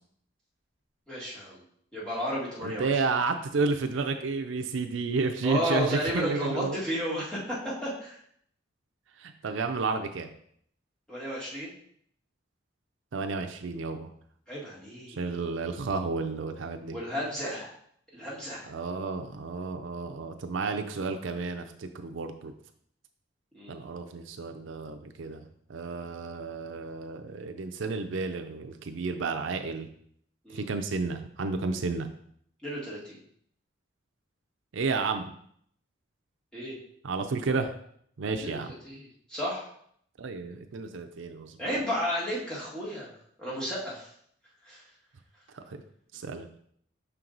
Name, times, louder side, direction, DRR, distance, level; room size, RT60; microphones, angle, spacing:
voice 1, 1.1-1.6 1.9-3.0 5.4-8.2 11.1-11.7 14.5-15.3 16.9-17.7 18.1-18.7 23.5-23.9 30.4-30.7 32.6-33.2 36.5-36.8 38.4-39.7 41.6-43.1 43.4-44.1 44.6-44.8, equal, 5° left, -7 dB, 1.8 m, -33 dB
voice 2, 2.6-6.8 9.2-10.3 13.1-14.1 15.2-17.0 18.7-22.5 23.7-25.4 25.7-29.9 30.5-32.1 34.7-35.3 37.0-37.7 38.2-38.7 40.2-41.6 45.5-45.8 46.1-46.5, right 4 dB, 75° right, 6 dB, 0.5 m, -31 dB
6.0 x 4.5 x 3.8 m, 0.66 s
head